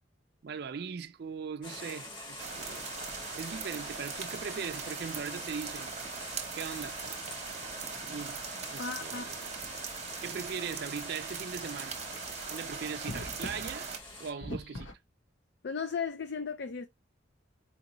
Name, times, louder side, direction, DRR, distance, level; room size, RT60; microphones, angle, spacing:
voice 1, 0.4-2.9 3.4-5.9 6.5-7.1 8.0-8.4 8.7-9.5 10.2-13.9 14.2-14.9, right 6 dB, 55° right, 0.4 m, -40 dB
sound 1, 1.6-14.3, left 2 dB, 25° left, 1.1 m, -46 dB
sound 2, 2.3-14.9, left 1 dB, 80° left, 1.1 m, -49 dB
sound 3, 2.4-14.0, right 6 dB, 35° right, 0.9 m, -41 dB
voice 2, 8.8-9.3 15.6-16.9, left 5 dB, 60° left, 0.4 m, -35 dB
4.5 x 2.6 x 2.9 m
head